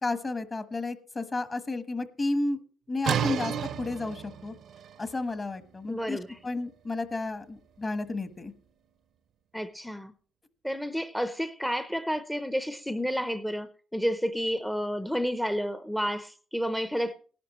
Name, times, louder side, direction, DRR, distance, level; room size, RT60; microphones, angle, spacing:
voice 1, 0.0-2.6 2.9-4.5 5.0-6.2 6.4-8.5, left 2 dB, 30° left, 1.2 m, -32 dB
sound 1, 3.0-8.7, right 8 dB, 65° right, 0.7 m, -35 dB
voice 2, 5.9-6.4 9.5-10.1 10.6-17.1, equal, 5° left, 0.6 m, -30 dB
18.0 x 11.0 x 3.0 m
cardioid pair, 90°, 0 cm